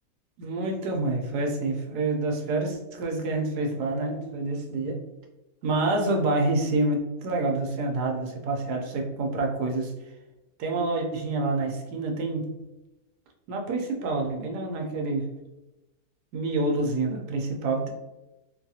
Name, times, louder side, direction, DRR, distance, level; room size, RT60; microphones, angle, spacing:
voice 1, 0.4-5.0 5.6-9.9 10.6-12.5 13.5-15.3 16.3-17.9, right 2 dB, 80° right, 2 dB, 1.1 m, -27 dB
2.9 x 2.3 x 2.7 m, 1.0 s
omnidirectional pair, 1.7 m